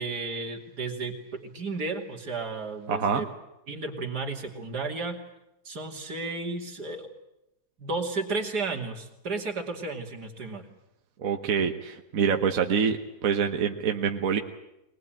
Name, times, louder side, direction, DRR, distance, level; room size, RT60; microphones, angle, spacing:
voice 1, 0.0-3.3 3.7-5.2 5.6-7.1 7.8-10.7, right 3 dB, 85° right, 3 dB, 3.1 m, -33 dB
voice 2, 2.9-3.2 11.2-14.4, right 6 dB, 60° right, 5 dB, 1.5 m, -26 dB
22.0 x 20.0 x 9.0 m, 0.88 s
omnidirectional pair, 1.7 m